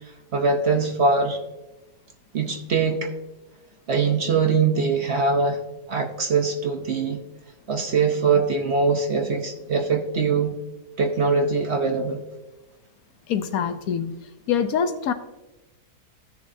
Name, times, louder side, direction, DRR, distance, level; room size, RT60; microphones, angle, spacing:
voice 1, 0.3-1.4 2.3-3.1 3.9-5.6 5.9-7.2 7.7-10.5 11.0-12.2, right 4 dB, 50° right, 5 dB, 0.9 m, -22 dB
voice 2, 13.3-14.1 14.5-15.1, left 7 dB, 70° left, 9 dB, 1.1 m, -24 dB
15.5 x 6.6 x 2.7 m, 1.0 s
omnidirectional pair, 1.7 m